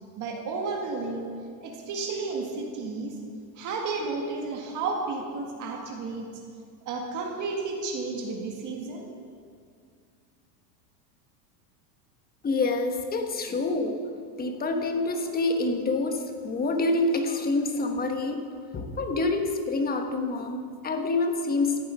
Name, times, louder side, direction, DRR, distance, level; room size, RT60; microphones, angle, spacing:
voice 1, 0.2-1.3 1.6-3.2 3.6-6.3 6.9-9.1, right 3 dB, 35° right, 1 dB, 1.7 m, -32 dB
voice 2, 12.4-14.0 14.4-18.4 18.7-21.8, left 2 dB, 20° left, 5 dB, 1.1 m, -27 dB
14.0 x 8.5 x 5.6 m, 2.1 s
supercardioid pair, 135°, 49 cm